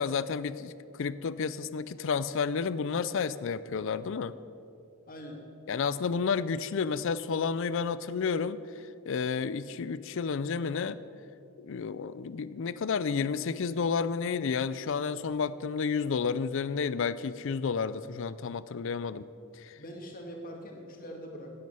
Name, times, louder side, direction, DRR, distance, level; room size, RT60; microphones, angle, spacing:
voice 1, 0.0-4.3 5.7-11.0 11.6-19.3 19.5-19.8, left 5 dB, 65° left, 16 dB, 0.4 m, -31 dB
voice 2, 5.1-5.4 19.8-21.5, equal, 45° left, 1 dB, 2.2 m, -43 dB
16.0 x 9.5 x 6.8 m, 2.6 s
head